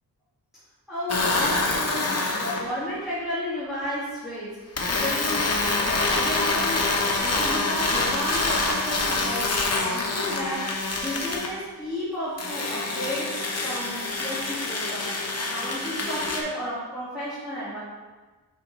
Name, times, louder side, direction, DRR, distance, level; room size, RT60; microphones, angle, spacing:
voice 1, 0.9-10.7 11.0-15.1 15.3-17.8, equal, ahead, -13 dB, 2.0 m, -33 dB
sound 1, 1.1-2.7 4.8-11.5 12.4-16.4, left 3 dB, 40° left, 0.8 m, -26 dB
6.5 x 5.1 x 3.2 m, 1.3 s
wide cardioid pair, 115°, 41 cm